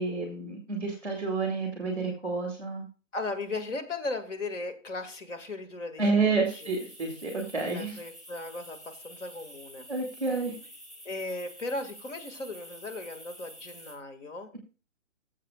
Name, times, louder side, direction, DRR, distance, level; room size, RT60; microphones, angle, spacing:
voice 1, 0.0-2.8 6.0-8.0 9.9-10.5, right 4 dB, 5° left, 1 dB, 1.4 m, -29 dB
voice 2, 3.1-6.7 7.7-9.9 11.1-14.5, left 2 dB, 70° left, 6 dB, 2.0 m, -37 dB
sound 1, 6.4-13.9, equal, 20° left, 2.4 m, -49 dB
18.5 x 7.4 x 2.3 m, 0.35 s
hypercardioid pair, 175°, 39 cm